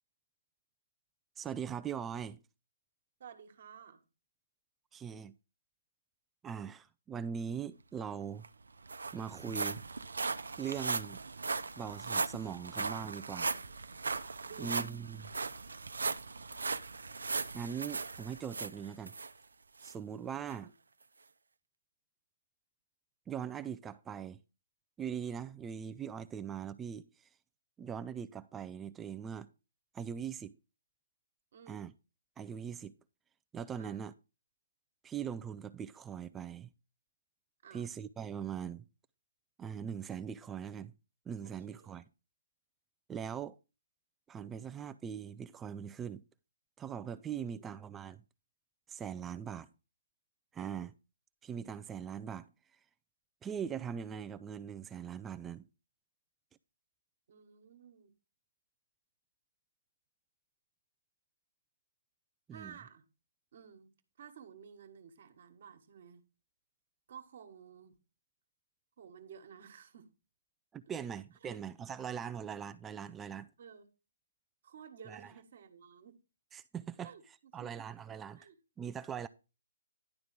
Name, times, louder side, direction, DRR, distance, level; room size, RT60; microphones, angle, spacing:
voice 1, 1.4-2.4 4.9-5.3 6.4-8.4 9.1-9.8 10.6-11.2 11.8-13.5 14.6-15.3 17.5-19.1 19.8-20.7 23.3-24.4 25.0-27.1 27.8-29.5 29.9-30.6 31.7-31.9 32.4-32.9 33.5-34.1 35.0-36.7 37.7-38.9 39.6-40.9 41.3-42.0 43.1-43.6 44.3-46.2 46.8-48.2 48.9-49.7 50.5-50.9 51.4-52.5 53.4-55.6 62.5-62.7 70.7-73.5 75.1-75.3 76.5-77.1 77.5-78.4 78.8-79.3, right 8 dB, 10° right, 0.4 m, -41 dB
voice 2, 3.2-4.0 14.4-14.9 20.5-20.7 31.5-31.9 33.8-34.1 37.6-37.9 41.4-42.0 47.4-47.7 50.6-50.9 57.3-58.1 62.5-63.0 63.5-66.2 67.1-68.0 69.0-70.1 71.4-71.6 73.6-73.9 74.6-76.2 77.0-77.7 78.1-78.6, right 7 dB, 55° right, 1.5 m, -54 dB
sound 1, 8.1-8.2 8.4-19.3 19.8-19.9 20.5-20.6, right 4 dB, 80° right, 0.7 m, -38 dB
11.0 x 3.7 x 6.1 m
figure-of-eight pair, 145°, 0 cm